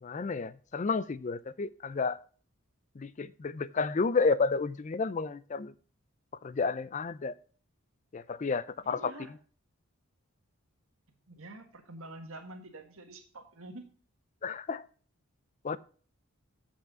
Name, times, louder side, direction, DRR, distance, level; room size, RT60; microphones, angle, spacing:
voice 1, 0.0-2.2 3.0-5.7 6.4-7.4 8.1-9.1 14.4-14.8 15.6-15.8, left 4 dB, 35° left, 0.3 m, -31 dB
voice 2, 8.8-9.3 11.1-13.8, right 2 dB, 70° right, 1.7 m, -47 dB
8.1 x 5.7 x 6.8 m
head